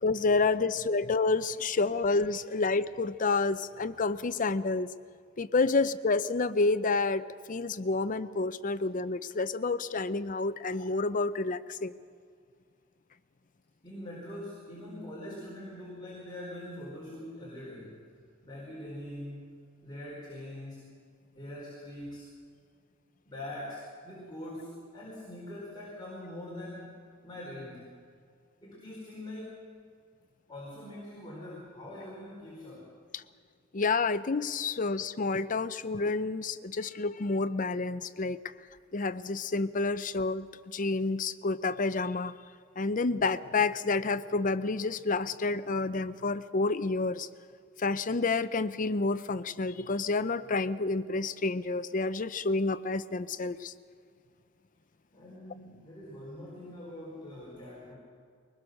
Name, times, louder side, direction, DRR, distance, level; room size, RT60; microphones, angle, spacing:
voice 1, 0.0-4.9 5.4-11.9 33.1-33.2 33.7-38.4 38.9-42.3 42.8-47.3 47.8-53.7, left 3 dB, 40° left, 13 dB, 0.6 m, -29 dB
voice 2, 13.8-18.0 18.4-19.6 19.8-20.9 21.3-22.3 23.3-28.0 28.6-29.6 30.5-33.2 55.1-58.0, left 1 dB, 20° left, -4 dB, 4.2 m, -43 dB
22.5 x 20.0 x 6.5 m, 2.2 s
head